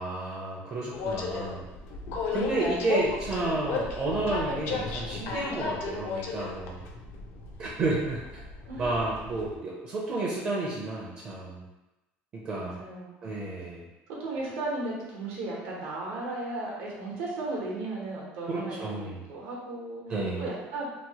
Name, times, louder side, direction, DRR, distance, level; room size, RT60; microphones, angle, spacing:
voice 1, 0.0-1.6 2.3-6.8 7.6-8.4 8.8-11.6 12.3-12.8 13.2-13.8 18.5-19.2 20.1-20.4, right 2 dB, 35° right, -5 dB, 0.5 m, -31 dB
Train, 0.9-9.6, left 4 dB, 60° left, 0.4 m, -35 dB
voice 2, 12.6-13.5 14.2-20.0 20.4-20.8, right 2 dB, 80° right, -4 dB, 0.9 m, -36 dB
2.9 x 2.0 x 2.8 m, 1.0 s
cardioid pair, 130°, 5 cm